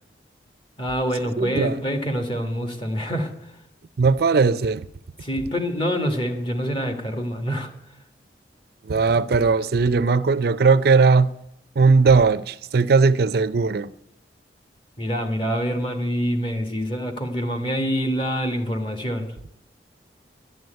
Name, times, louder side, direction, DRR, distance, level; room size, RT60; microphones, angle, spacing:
voice 1, 0.8-3.3 5.2-7.7 15.0-19.3, equal, 30° left, 1.7 m, -26 dB
voice 2, 1.4-1.8 4.0-4.8 8.8-11.3 11.8-13.9, right 4 dB, 60° right, 0.5 m, -18 dB
11.5 x 9.3 x 9.0 m
head